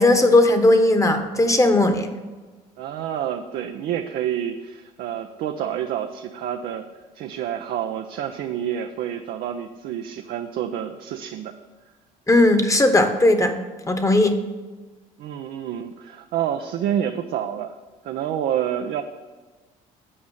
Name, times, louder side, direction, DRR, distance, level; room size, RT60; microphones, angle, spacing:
voice 1, 0.0-2.1 12.3-13.6 13.9-14.4, left 2 dB, 20° left, 7 dB, 1.2 m, -17 dB
voice 2, 2.8-6.8 7.1-11.5 15.2-17.7 18.0-19.0, right 10 dB, 70° right, 5 dB, 0.6 m, -28 dB
8.6 x 5.1 x 7.1 m, 1.3 s
supercardioid pair, 70°, 17 cm